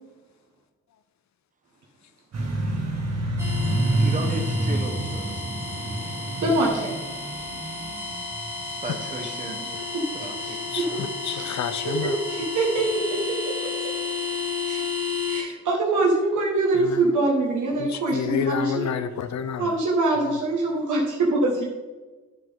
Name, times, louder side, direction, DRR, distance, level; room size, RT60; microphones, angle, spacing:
sound 1, 2.3-8.5, right 1 dB, 60° right, 2.0 m, -27 dB
sound 2, 3.4-15.4, left 4 dB, 10° right, 2.2 m, -32 dB
voice 1, 4.0-5.4 8.8-9.6 10.1-11.0, right 2 dB, 25° right, 4 dB, 1.1 m, -35 dB
voice 2, 6.4-7.0 9.9-10.1 10.4-11.0 11.3-11.5 11.8-13.4 13.6-13.7 14.6-14.8 15.3-18.9 19.6-21.7, right 2 dB, 90° right, -2 dB, 1.7 m, -24 dB
voice 3, 10.7-12.1 16.8-17.0 17.8-19.7, left 7 dB, 70° left, 11 dB, 0.6 m, -29 dB
9.9 x 7.4 x 3.7 m, 1.3 s
wide cardioid pair, 165°, 29 cm